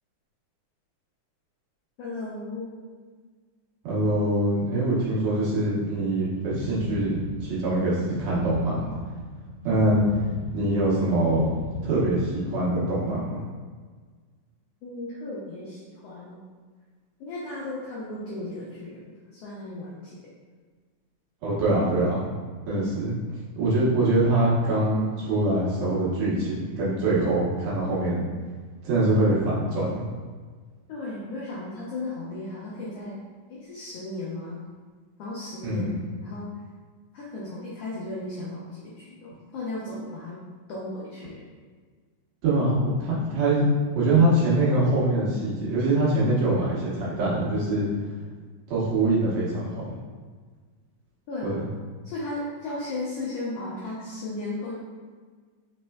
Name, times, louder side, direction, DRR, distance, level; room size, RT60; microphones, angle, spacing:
voice 1, 2.0-2.7 9.8-9.9 14.8-16.4 17.2-19.0 19.3-20.3 30.9-33.2 33.5-34.6 35.2-35.9 36.2-36.5 37.1-40.4 40.7-41.4 51.3-51.7 52.0-54.7, left 2 dB, 90° left, -6 dB, 1.3 m, -35 dB
voice 2, 3.8-9.0 9.6-10.0 10.5-11.5 11.8-13.4 21.4-22.4 22.7-23.2 23.6-28.3 28.8-30.1 35.6-35.9 42.4-42.7 43.0-43.6 43.9-47.9 48.7-50.0 51.4-51.6, right 2 dB, 65° right, -8 dB, 2.1 m, -24 dB
sound 1, 6.4-12.7, left 3 dB, 70° left, 1.7 m, -37 dB
4.3 x 4.2 x 2.3 m, 1.5 s
omnidirectional pair, 3.6 m